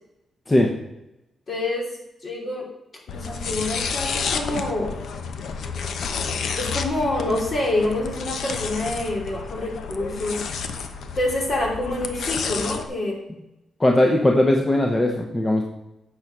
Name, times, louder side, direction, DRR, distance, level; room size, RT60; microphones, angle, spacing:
voice 1, 1.5-1.9 2.2-2.7 3.1-4.9 6.6-10.4 11.1-13.2, left 2 dB, 45° left, 0 dB, 2.9 m, -26 dB
sound 1, 3.1-12.8, left 5 dB, 75° left, 0.8 m, -30 dB
voice 2, 13.8-15.6, left 1 dB, 20° left, 2 dB, 1.0 m, -19 dB
9.0 x 6.6 x 6.1 m, 0.91 s
cardioid pair, 110°, 0 cm